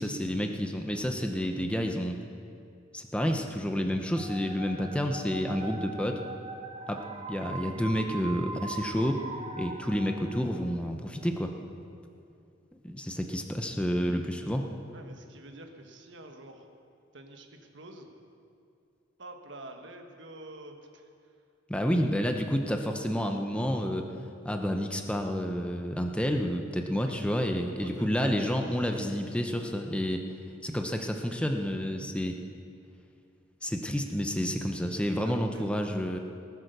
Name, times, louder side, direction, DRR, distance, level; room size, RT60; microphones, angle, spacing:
voice 1, 0.0-2.2 2.9-6.2 6.9-9.2 9.6-11.5 12.8-14.7 21.7-24.1 24.4-30.2 30.6-32.4 33.6-36.2, equal, 5° left, 4 dB, 0.7 m, -30 dB
sound 1, 4.1-10.9, right 3 dB, 25° right, 1.0 m, -41 dB
voice 2, 14.9-16.7 17.1-18.1 19.2-21.3 27.0-27.3 27.7-29.1 35.2-35.7, right 1 dB, 70° right, 4 dB, 1.5 m, -48 dB
19.0 x 8.8 x 6.7 m, 2.5 s
head